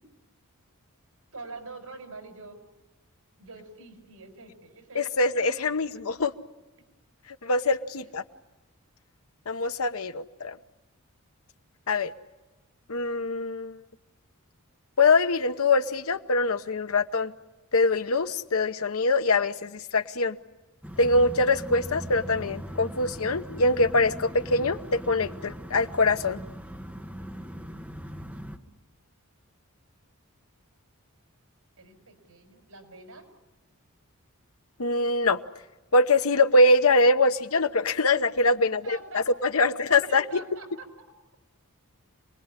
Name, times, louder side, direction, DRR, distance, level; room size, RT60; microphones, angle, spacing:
voice 1, 1.3-2.6 3.4-5.5 31.8-33.3 38.8-39.2 39.6-40.9, right 3 dB, 85° right, 6 dB, 5.5 m, -45 dB
voice 2, 4.9-6.3 7.4-8.2 9.5-10.6 11.9-12.1 12.9-13.8 15.0-17.3 17.7-20.4 21.0-26.4 34.8-35.4 35.9-40.2, left 2 dB, 70° left, 10 dB, 1.0 m, -23 dB
sound 1, 20.8-28.6, equal, 5° right, 1.3 m, -40 dB
27.5 x 20.5 x 9.9 m, 1.1 s
head